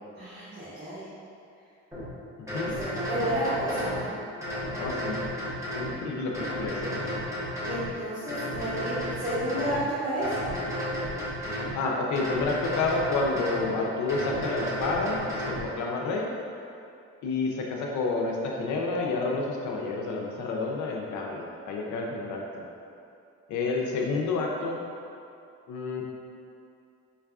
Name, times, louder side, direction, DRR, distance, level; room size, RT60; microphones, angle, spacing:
voice 1, 0.1-1.0 2.7-4.1 7.6-10.4, right 1 dB, 35° right, -16 dB, 1.5 m, -31 dB
sound 1, 1.9-2.1 2.5-4.0 4.4-5.9 6.3-7.9 8.3-9.8 10.2-11.7 12.2-13.7 14.1-15.6, equal, 10° right, 1.0 m, -33 dB
voice 2, 4.7-5.2 5.8-7.1 11.7-15.2 15.6-16.3 17.2-22.4 23.5-24.8 25.7-26.0, left 3 dB, 75° left, -1 dB, 0.5 m, -29 dB
5.2 x 2.3 x 2.3 m, 2.6 s
cardioid pair, 90°, 30 cm